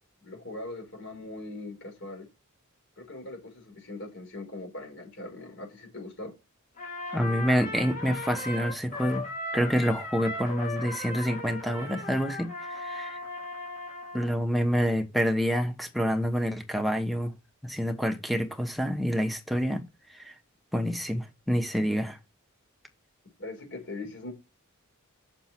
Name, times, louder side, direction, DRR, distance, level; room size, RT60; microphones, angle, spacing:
voice 1, 0.2-2.3 3.0-6.3 23.4-24.3, left 2 dB, 60° left, 5.2 m, -41 dB
Trumpet, 6.8-14.3, left 2 dB, 40° left, 3.7 m, -37 dB
voice 2, 7.1-9.3 9.5-13.2 14.1-17.3 17.6-19.8 20.1-20.3 20.7-22.2, equal, ahead, 1.1 m, -27 dB
7.1 x 6.1 x 5.8 m
head